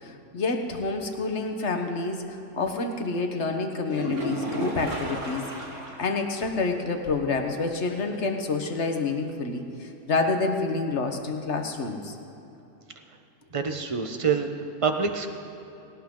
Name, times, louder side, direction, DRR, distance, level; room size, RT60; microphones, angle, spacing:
voice 1, 0.0-2.2 2.5-5.4 6.0-12.2, left 3 dB, 55° left, 5 dB, 1.4 m, -28 dB
sound 1, 3.9-6.1 6.5-6.6 7.0-7.1 10.9-11.0, right 1 dB, 60° right, 2.3 m, -32 dB
voice 2, 13.5-15.3, right 5 dB, 25° right, 5 dB, 0.9 m, -26 dB
19.0 x 18.0 x 3.8 m, 3.0 s
omnidirectional pair, 1.5 m